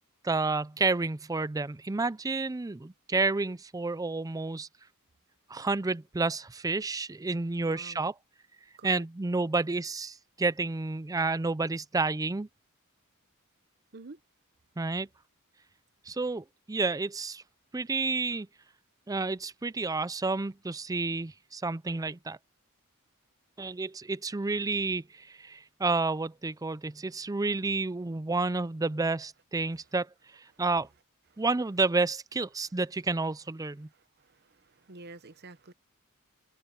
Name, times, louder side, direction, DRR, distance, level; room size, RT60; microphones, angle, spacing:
voice 1, 0.2-4.7 5.5-8.1 8.8-12.5 14.8-15.1 16.1-17.4 17.7-18.5 19.1-22.4 23.6-30.1 30.4-30.9 31.4-33.9, right 3 dB, 15° right, 0.5 m, -30 dB
voice 2, 7.6-8.0 8.8-9.0 13.9-14.2 31.3-31.4 34.2-35.7, right 3 dB, 50° right, 1.0 m, -48 dB
open air
head